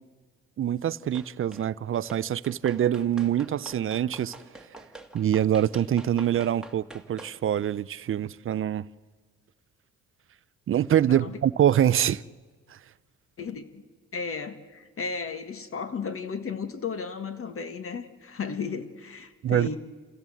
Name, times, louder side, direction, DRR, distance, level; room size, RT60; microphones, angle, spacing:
voice 1, 0.6-4.3 5.1-8.9 10.7-12.2 19.4-19.8, right 10 dB, 45° right, 0.5 m, -25 dB
sound 1, 1.1-1.7 2.1-7.4, right 2 dB, ahead, 1.7 m, -46 dB
voice 2, 13.4-13.8 14.1-19.8, left 5 dB, 45° left, 1.8 m, -34 dB
28.5 x 15.5 x 7.7 m
cardioid pair, 90°, 30 cm